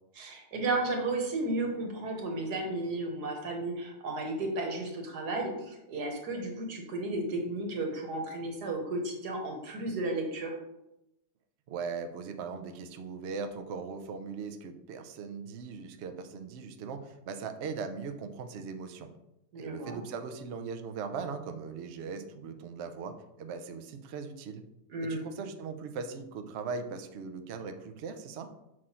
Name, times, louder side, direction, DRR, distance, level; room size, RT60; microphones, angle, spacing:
voice 1, 0.2-10.5 19.5-20.0 24.9-25.3, right 2 dB, 65° right, 2 dB, 1.7 m, -33 dB
voice 2, 11.7-19.1 19.5-24.6 25.0-28.5, right 5 dB, 90° right, 7 dB, 0.5 m, -39 dB
6.2 x 4.3 x 4.3 m, 0.88 s
omnidirectional pair, 1.9 m